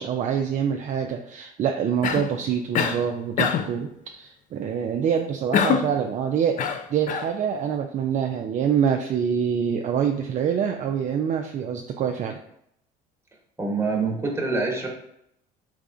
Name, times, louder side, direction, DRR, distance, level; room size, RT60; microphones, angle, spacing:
voice 1, 0.0-12.4, right 8 dB, 40° right, 3 dB, 0.4 m, -26 dB
Cough, 2.0-2.4 2.7-3.0 3.4-3.8 5.5-6.0 6.6-7.3, left 7 dB, 45° left, 0.4 m, -24 dB
voice 2, 13.6-14.9, right 3 dB, 15° right, -1 dB, 1.1 m, -25 dB
3.5 x 3.2 x 2.5 m, 0.75 s
supercardioid pair, 75°, 19 cm